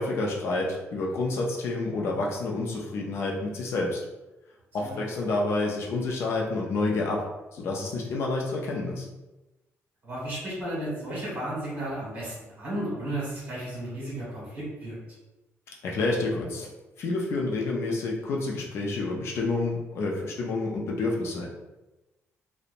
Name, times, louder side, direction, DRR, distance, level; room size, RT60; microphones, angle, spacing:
voice 1, 0.0-4.0 4.7-7.2 7.5-9.1 15.8-16.7 17.0-21.5, left 2 dB, 55° left, -1 dB, 0.4 m, -29 dB
voice 2, 10.0-15.0, right 1 dB, 35° right, -7 dB, 1.4 m, -33 dB
2.8 x 2.1 x 2.5 m, 1.0 s
cardioid pair, 175°, 5 cm